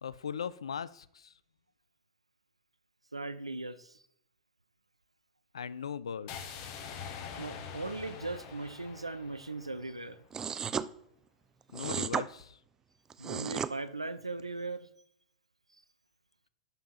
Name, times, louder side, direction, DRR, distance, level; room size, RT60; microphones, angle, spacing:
voice 1, 0.0-1.3 5.5-6.6 11.7-12.6, left 7 dB, 70° left, 19 dB, 0.4 m, -39 dB
voice 2, 3.1-4.0 7.4-10.2 13.2-14.9, right 3 dB, 90° right, 13 dB, 0.5 m, -38 dB
sound 1, 6.3-10.3, left 7 dB, 45° left, 1.1 m, -45 dB
sound 2, 10.3-10.9 11.7-12.3 13.1-13.7, right 7 dB, 20° right, 0.3 m, -33 dB
11.5 x 5.4 x 2.9 m, 0.71 s
figure-of-eight pair, 95°, 3 cm